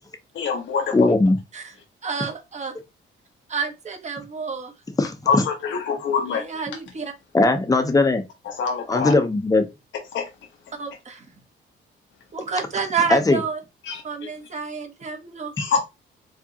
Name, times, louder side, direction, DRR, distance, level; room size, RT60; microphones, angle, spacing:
voice 1, 0.3-0.9 5.3-6.4 8.4-9.1 10.1-10.3 13.9-14.0 15.6-15.8, left 5 dB, 70° left, 1.2 m, -24 dB
voice 2, 0.9-1.4 5.0-5.1 7.3-8.2 8.9-9.6 13.1-13.4, left 2 dB, 15° left, 0.8 m, -18 dB
voice 3, 2.0-2.7 3.5-4.7 6.3-7.1 10.8-11.3 12.3-13.6 14.0-15.5, right 5 dB, 35° right, 1.3 m, -29 dB
4.7 x 2.5 x 2.8 m
cardioid pair, 90°, 20 cm